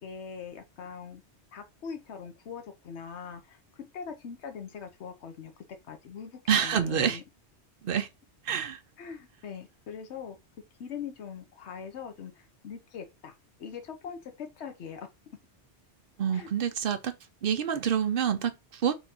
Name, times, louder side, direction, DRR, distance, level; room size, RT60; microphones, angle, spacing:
voice 1, 0.0-1.2 1.5-7.2 9.0-10.4 10.8-13.3 13.6-15.1 16.3-16.5, left 6 dB, 75° left, 1.1 m, -42 dB
voice 2, 6.5-7.2 7.8-8.1 8.5-8.8 16.2-17.1 17.4-18.9, right 8 dB, 60° right, 0.7 m, -27 dB
4.1 x 3.6 x 2.9 m
omnidirectional pair, 1.2 m